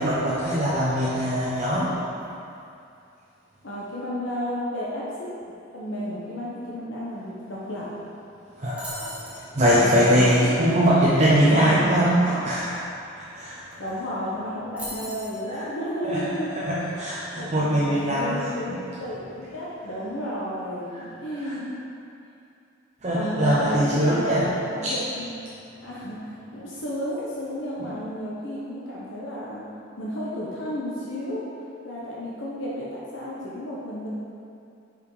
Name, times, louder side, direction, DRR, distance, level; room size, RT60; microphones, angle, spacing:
voice 1, 0.0-1.9 8.6-12.8 13.2-13.8 15.5-15.7 16.1-18.4 21.4-21.6 23.0-24.5 24.8-24.9 27.8-27.9, equal, 35° right, -8 dB, 0.7 m, -22 dB
voice 2, 3.6-5.3 5.7-7.9 9.7-12.4 13.8-16.5 16.9-17.0 17.3-21.7 23.1-25.3 25.8-29.6 30.0-31.5 31.8-34.1, equal, 70° left, -6 dB, 1.0 m, -32 dB
sound 1, 8.8-9.4 13.4-13.5 13.7-14.0 14.8-15.4, equal, 5° right, 1.1 m, -37 dB
5.3 x 5.1 x 4.8 m, 2.6 s
head